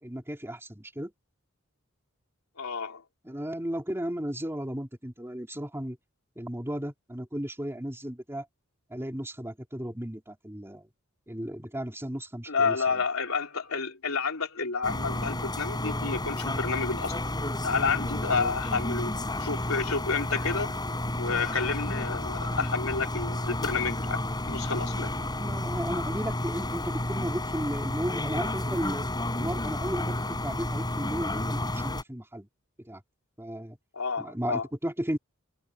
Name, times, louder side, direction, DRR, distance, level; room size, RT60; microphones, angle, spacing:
voice 1, 0.0-1.1 3.2-6.0 6.4-8.4 8.9-10.9 11.3-13.0 18.3-18.5 25.0-29.0 29.3-32.5 32.8-33.0 33.4-33.8 34.2-35.2, equal, 10° right, 3.2 m, -35 dB
voice 2, 2.6-3.0 12.5-17.2 17.6-20.7 21.2-25.1 33.9-34.7, left 4 dB, 80° left, 3.7 m, -30 dB
sound 1, 14.8-32.0, left 1 dB, 20° left, 5.0 m, -31 dB
head